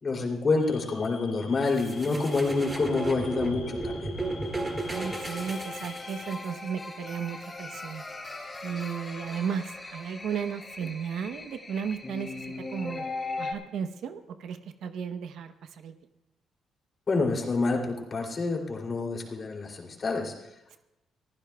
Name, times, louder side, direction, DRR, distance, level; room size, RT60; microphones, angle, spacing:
voice 1, 0.0-4.1 17.1-20.3, left 3 dB, 40° left, 1 dB, 2.9 m, -27 dB
sound 1, 0.6-6.3, left 6 dB, 80° left, 3.1 m, -49 dB
sound 2, 1.6-6.6, right 2 dB, 20° right, 2.1 m, -34 dB
voice 2, 4.8-8.0 8.6-12.5 12.7-13.0 13.4-15.9 20.7-20.8, right 7 dB, 75° right, 9 dB, 0.8 m, -34 dB
sound 3, 4.9-13.5, left 3 dB, 20° left, 3.8 m, -39 dB
24.0 x 15.0 x 2.3 m, 0.92 s
cardioid pair, 90°, 0 cm